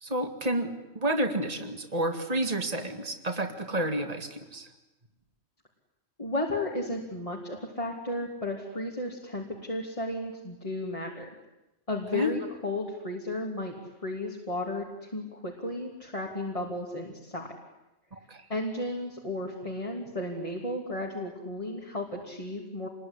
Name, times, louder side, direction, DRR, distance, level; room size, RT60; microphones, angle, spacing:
voice 1, 0.0-4.7 12.1-12.3 18.1-18.4, right 1 dB, 35° right, 5 dB, 2.3 m, -30 dB
voice 2, 6.2-11.3 11.9-13.7 14.0-17.5 18.5-22.9, left 1 dB, 30° left, -1 dB, 3.2 m, -34 dB
28.0 x 21.5 x 9.9 m, 0.98 s
omnidirectional pair, 1.1 m